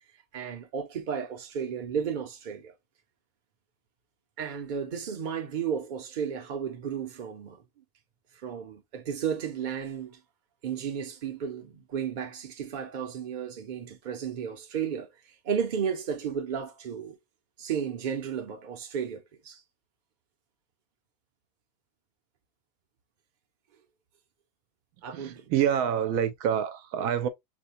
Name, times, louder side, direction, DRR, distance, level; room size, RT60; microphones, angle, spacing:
voice 1, 0.3-2.7 4.4-7.6 8.4-10.2 10.6-15.1 15.4-17.2 17.6-19.6 25.0-25.5, right 7 dB, 45° right, 0.7 m, -33 dB
voice 2, 25.1-27.3, right 9 dB, 80° right, 1.0 m, -27 dB
4.8 x 2.2 x 2.6 m
omnidirectional pair, 1.5 m